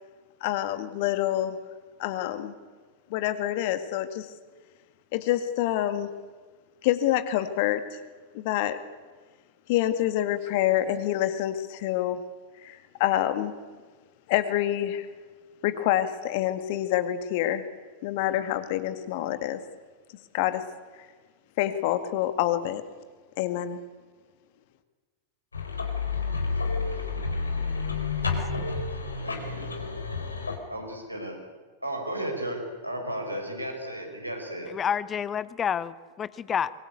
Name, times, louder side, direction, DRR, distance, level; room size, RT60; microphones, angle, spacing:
voice 1, 0.4-1.6 2.0-2.6 3.1-4.3 5.1-6.1 6.8-7.8 8.3-8.8 9.7-12.2 12.6-13.5 14.3-15.1 15.6-17.6 18.0-19.6 20.3-20.6 21.6-22.8 23.4-23.8, left 13 dB, 50° left, 11 dB, 2.0 m, -27 dB
sound 1, 25.5-30.6, left 4 dB, 75° left, 4.0 m, -30 dB
voice 2, 29.2-29.9 30.7-31.4 31.8-34.7, right 1 dB, 90° right, 1 dB, 6.0 m, -34 dB
voice 3, 34.7-36.7, left 8 dB, 25° left, 18 dB, 0.9 m, -29 dB
24.5 x 22.5 x 8.5 m, 1.4 s
figure-of-eight pair, 90°, 0 cm